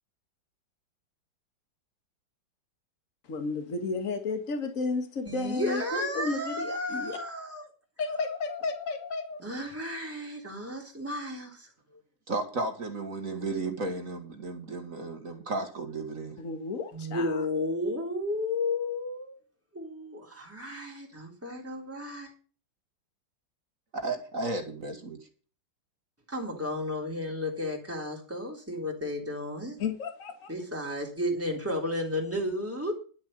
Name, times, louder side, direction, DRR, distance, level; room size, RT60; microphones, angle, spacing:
voice 1, 3.3-7.2 8.0-9.4 16.4-17.4 29.8-30.5 30.9-31.0, left 4 dB, 45° left, 7 dB, 2.1 m, -33 dB
voice 2, 5.2-7.7 9.4-11.7 16.9-19.4 19.7-22.3 26.3-29.8 30.5-32.9, left 1 dB, 5° right, -1 dB, 3.5 m, -33 dB
voice 3, 12.3-16.4 23.9-25.2, right 2 dB, 45° right, 5 dB, 2.1 m, -34 dB
11.5 x 7.3 x 6.6 m, 0.38 s
omnidirectional pair, 2.0 m